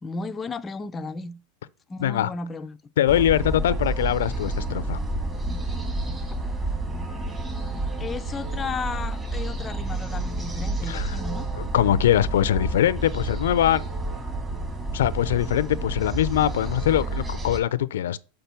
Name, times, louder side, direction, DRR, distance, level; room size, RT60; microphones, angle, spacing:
voice 1, 0.0-1.4 1.9-2.8 6.3-6.4 8.0-11.5, left 4 dB, 20° left, 0.5 m, -34 dB
voice 2, 2.0-2.3 3.0-5.0 10.9-11.2 11.7-13.8 14.9-18.2, left 11 dB, 85° left, 0.5 m, -22 dB
sound 1, 3.1-17.6, right 2 dB, 15° right, 2.4 m, -30 dB
5.8 x 5.2 x 6.8 m
supercardioid pair, 125°, 0 cm